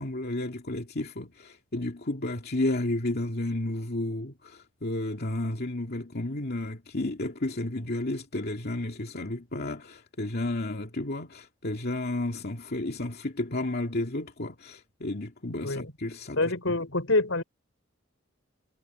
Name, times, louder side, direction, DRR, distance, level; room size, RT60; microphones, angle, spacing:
voice 1, 0.0-16.4 16.7-16.8, left 1 dB, 55° left, 2.3 m, -32 dB
voice 2, 16.4-17.4, left 2 dB, 80° left, 5.4 m, -26 dB
head